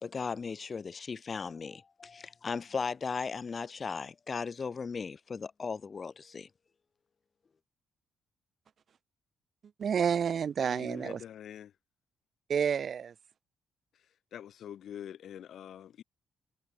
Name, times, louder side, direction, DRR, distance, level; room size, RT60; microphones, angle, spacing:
voice 1, 0.0-6.5, left 5 dB, 35° left, 0.5 m, -37 dB
voice 2, 9.8-11.2 12.5-13.1, right 7 dB, 50° right, 0.5 m, -29 dB
voice 3, 10.6-11.7 14.3-16.0, left 10 dB, 65° left, 1.5 m, -45 dB
cardioid pair, 95°, 0 cm